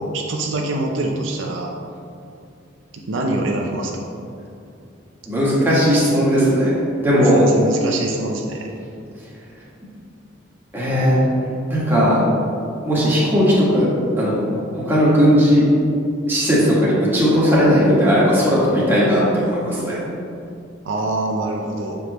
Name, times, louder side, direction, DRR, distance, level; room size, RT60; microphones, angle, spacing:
voice 1, 0.0-1.7 2.9-4.1 7.3-8.7 20.8-22.0, right 2 dB, 70° right, 1 dB, 0.5 m, -24 dB
voice 2, 5.2-6.7 7.0-7.5 10.7-12.2 12.8-13.9 14.2-15.7 16.3-20.0, equal, 10° right, -8 dB, 1.5 m, -17 dB
6.9 x 4.6 x 3.0 m, 2.5 s
head